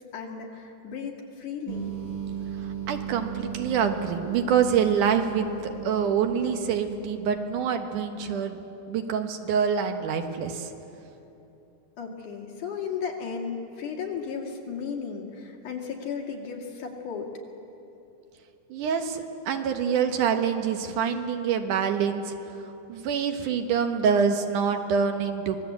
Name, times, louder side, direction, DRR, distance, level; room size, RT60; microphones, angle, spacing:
voice 1, 0.1-1.9 12.0-17.3, left 6 dB, 75° left, 0 dB, 3.9 m, -35 dB
sound 1, 1.7-8.1, right 9 dB, 30° right, 1.8 m, -37 dB
voice 2, 2.6-8.6 8.9-10.7 18.7-22.3 22.9-25.6, right 7 dB, 80° right, 6 dB, 2.8 m, -26 dB
25.0 x 19.0 x 8.3 m, 2.9 s
omnidirectional pair, 3.6 m